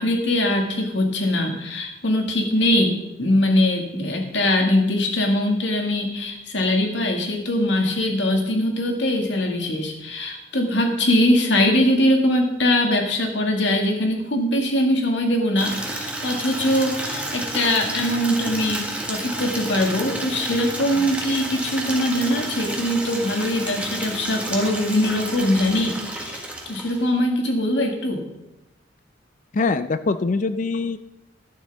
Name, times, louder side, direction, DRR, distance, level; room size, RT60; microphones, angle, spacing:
voice 1, 0.0-28.3, left 1 dB, 80° left, 2 dB, 1.9 m, -22 dB
Water tap faucet / Liquid, 15.6-27.1, right 1 dB, 5° right, 1.5 m, -31 dB
voice 2, 29.5-31.0, left 3 dB, 45° left, 12 dB, 0.4 m, -23 dB
11.5 x 11.0 x 3.5 m, 0.93 s
head